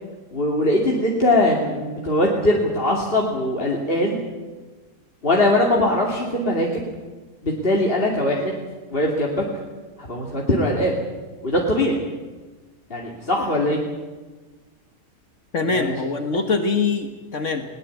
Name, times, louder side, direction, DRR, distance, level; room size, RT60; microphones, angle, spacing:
voice 1, 0.3-4.2 5.2-6.8 7.4-8.6 8.9-9.4 10.0-11.0 11.4-12.0 12.9-13.8 15.6-15.9, left 1 dB, 40° left, -2 dB, 2.8 m, -21 dB
voice 2, 15.5-17.7, left 4 dB, 60° left, 6 dB, 1.9 m, -23 dB
20.5 x 20.0 x 8.4 m, 1.3 s
omnidirectional pair, 1.4 m